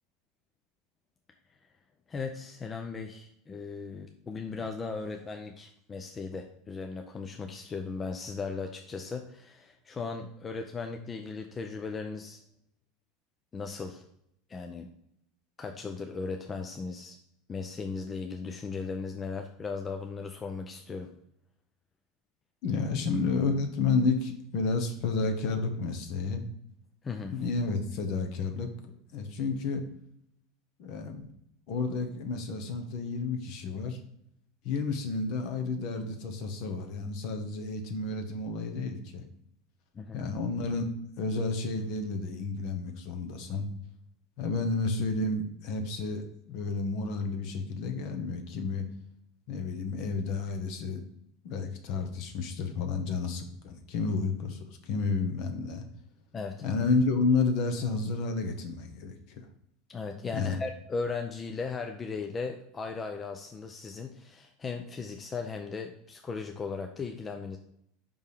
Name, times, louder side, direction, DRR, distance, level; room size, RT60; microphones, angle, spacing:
voice 1, 2.1-12.4 13.5-14.0 14.5-14.9 15.6-17.2 17.5-21.1 27.0-27.3 39.9-40.2 56.3-56.6 59.9-67.6, left 4 dB, 25° left, 5 dB, 0.6 m, -37 dB
voice 2, 22.6-26.4 27.3-29.9 30.8-31.3 31.7-34.0 34.6-39.2 40.1-40.9 41.2-43.7 44.4-46.2 46.5-48.9 49.5-51.0 51.4-55.8 56.6-59.5 60.3-60.6, left 4 dB, 50° left, 6 dB, 1.0 m, -31 dB
5.5 x 5.3 x 4.9 m, 0.74 s
figure-of-eight pair, 75°, 0 cm